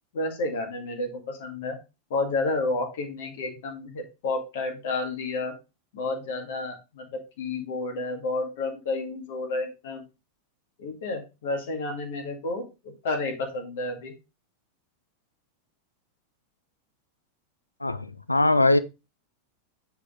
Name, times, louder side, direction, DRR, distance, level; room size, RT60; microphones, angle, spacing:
voice 1, 0.1-1.8 2.1-5.5 5.9-10.0 10.8-12.6 13.0-14.1, left 2 dB, 55° left, 2.1 m, -30 dB
voice 2, 17.8-18.8, left 2 dB, 85° left, 0.5 m, -21 dB
8.4 x 4.6 x 3.6 m
figure-of-eight pair, 90°, 0 cm